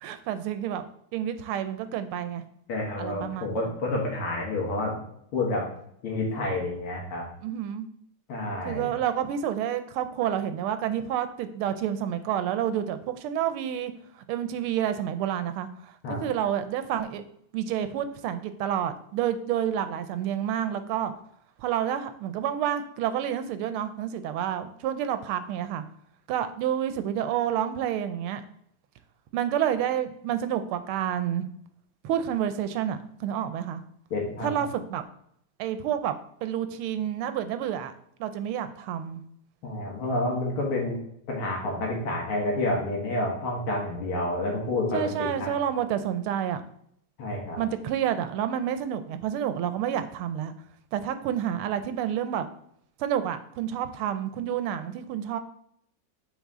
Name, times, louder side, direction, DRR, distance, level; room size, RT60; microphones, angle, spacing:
voice 1, 0.0-0.9 1.1-2.4 3.0-3.6 7.4-7.9 8.6-13.9 14.3-15.7 16.2-17.2 17.5-21.1 21.6-25.8 26.3-28.4 29.3-31.5 32.0-33.8 34.4-35.0 35.6-36.1 36.4-37.9 38.2-39.2 44.9-46.6 47.6-50.5 50.9-52.4 53.0-55.4, right 10 dB, 90° right, 10 dB, 1.5 m, -29 dB
voice 2, 2.7-5.0 5.3-5.6 6.0-7.2 8.3-8.9 16.0-16.2 34.1-34.6 39.6-41.0 41.3-45.5 47.2-47.6, left 2 dB, 85° left, -2 dB, 2.2 m, -29 dB
7.2 x 4.1 x 3.6 m, 0.70 s
omnidirectional pair, 2.3 m